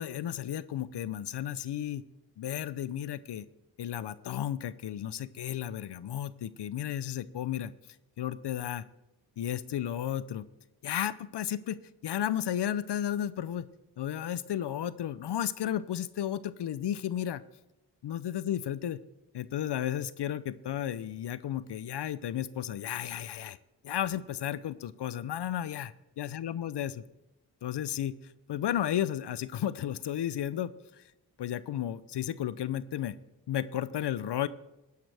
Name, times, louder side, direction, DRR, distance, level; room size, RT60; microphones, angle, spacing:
voice 1, 0.0-2.0 2.4-3.5 3.8-7.7 8.2-8.8 9.4-10.5 10.8-13.7 14.0-17.4 18.0-19.0 19.3-23.6 23.8-27.0 27.6-31.0 31.4-33.2 33.5-34.5, left 11 dB, 65° left, 17 dB, 0.6 m, -33 dB
15.5 x 10.5 x 3.4 m, 0.94 s
supercardioid pair, 40°, 44 cm